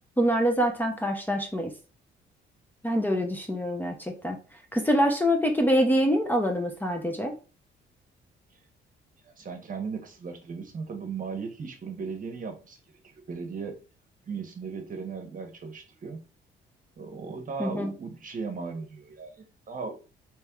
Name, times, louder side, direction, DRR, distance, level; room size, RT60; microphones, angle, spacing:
voice 1, 0.2-1.7 2.8-4.4 4.7-7.3 17.6-17.9, equal, 10° left, 0.8 m, -25 dB
voice 2, 9.4-12.8 13.0-13.8 14.3-16.2 17.0-19.9, right 5 dB, 40° right, 1.0 m, -37 dB
3.4 x 3.2 x 3.4 m
cardioid pair, 90°, 20 cm